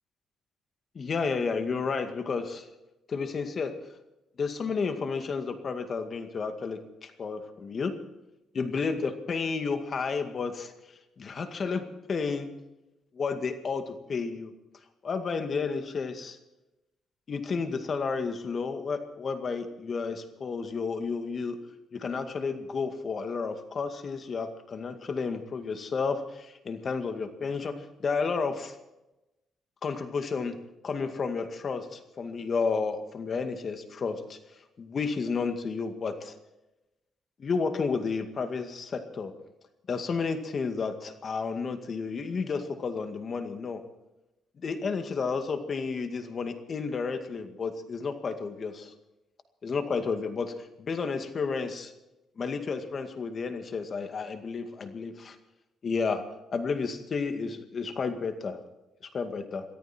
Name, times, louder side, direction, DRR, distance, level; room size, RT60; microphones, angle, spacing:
voice 1, 1.0-2.7 3.1-3.7 4.4-7.9 8.5-10.7 11.2-11.8 12.1-12.5 13.1-14.5 15.0-16.4 17.3-21.6 21.9-27.7 28.0-28.7 29.8-30.6 30.8-34.4 34.8-36.3 37.4-39.3 39.9-43.8 44.6-48.9 49.6-50.5 50.8-51.9 52.4-55.4 55.8-56.2 56.5-58.6 59.1-59.6, left 5 dB, 45° left, 7 dB, 2.1 m, -31 dB
22.5 x 14.0 x 4.5 m, 0.97 s
cardioid pair, 90°, 0 cm